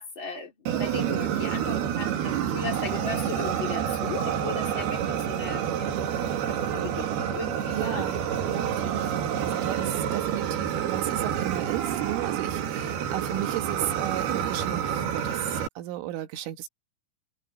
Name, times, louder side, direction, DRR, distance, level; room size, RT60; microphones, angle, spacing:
voice 1, 0.0-8.1 9.9-10.1, left 4 dB, 30° left, 3.0 m, -37 dB
Fire, 0.7-15.7, right 9 dB, 60° right, 3.3 m, -28 dB
voice 2, 7.7-8.2 8.5-16.7, right 13 dB, 75° right, 3.9 m, -34 dB
omnidirectional pair, 5.9 m